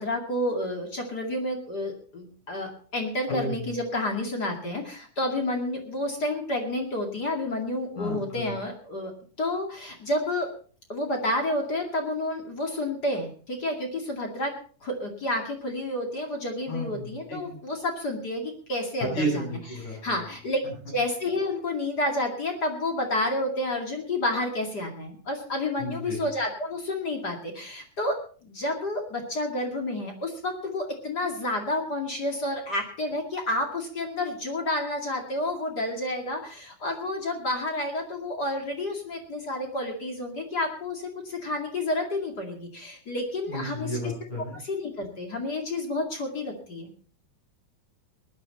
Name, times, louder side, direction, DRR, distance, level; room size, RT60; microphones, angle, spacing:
voice 1, 0.0-9.1 9.4-10.5 10.9-14.5 14.8-20.6 20.9-43.9 44.6-46.9, left 1 dB, 30° left, 2 dB, 2.2 m, -30 dB
voice 2, 3.3-3.7 8.0-8.5 16.7-17.6 19.0-20.2 20.6-20.7 25.8-26.3 43.5-44.6, equal, 50° left, -2 dB, 8.9 m, -32 dB
19.5 x 11.0 x 4.2 m, 0.43 s
omnidirectional pair, 4.5 m